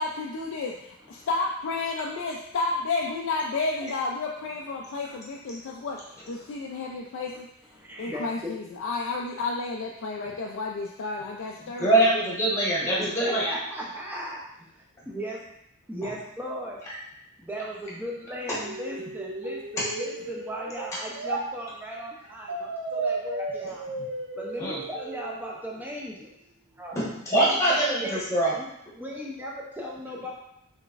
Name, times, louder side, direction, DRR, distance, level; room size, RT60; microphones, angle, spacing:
voice 1, 0.0-6.0 6.3-7.5 8.0-12.3, left 3 dB, 60° left, -1 dB, 0.3 m, -31 dB
voice 2, 4.8-5.2 5.7-5.9 6.2-6.6 7.7-8.5 13.0-14.4 15.1-15.4 15.9-16.8 17.4-23.9 24.3-26.3 26.8-27.0 27.3-28.2 28.5-28.7 28.9-30.3, equal, 10° right, -3 dB, 0.5 m, -37 dB
voice 3, 11.8-13.5 24.6-24.8 26.9-28.5, right 1 dB, 15° left, -7 dB, 1.1 m, -23 dB
sound 1, 18.6-21.5 22.5-25.5, right 3 dB, 65° right, 0.5 m, -34 dB
3.7 x 3.5 x 2.4 m, 0.79 s
head